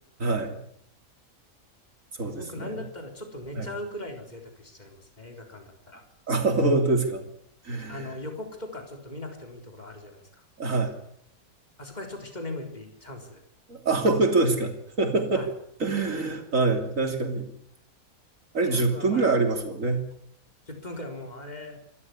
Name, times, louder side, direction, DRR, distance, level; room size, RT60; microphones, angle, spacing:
voice 1, 0.2-0.6 2.2-2.7 3.6-3.7 6.3-7.2 7.6-8.1 10.6-10.9 13.7-14.7 15.0-15.5 15.8-17.5 18.5-20.1, right 3 dB, 60° right, 5 dB, 3.4 m, -25 dB
voice 2, 2.3-6.0 7.9-10.4 11.8-13.4 14.2-14.3 15.3-15.5 18.6-19.3 20.7-21.8, left 1 dB, 30° left, 3 dB, 4.2 m, -39 dB
26.5 x 13.0 x 9.7 m, 0.73 s
omnidirectional pair, 1.6 m